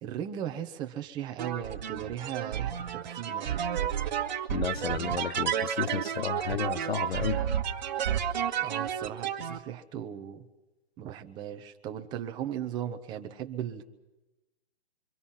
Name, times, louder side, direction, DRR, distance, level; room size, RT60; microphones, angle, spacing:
voice 1, 0.0-3.6 8.6-10.4 11.0-13.8, right 10 dB, 15° right, 6 dB, 0.9 m, -37 dB
sound 1, 1.4-9.6, right 9 dB, 45° right, 1.7 m, -31 dB
voice 2, 4.5-7.4, left 7 dB, 70° left, 14 dB, 1.2 m, -32 dB
27.5 x 24.5 x 5.7 m, 1.0 s
hypercardioid pair, 155°, 32 cm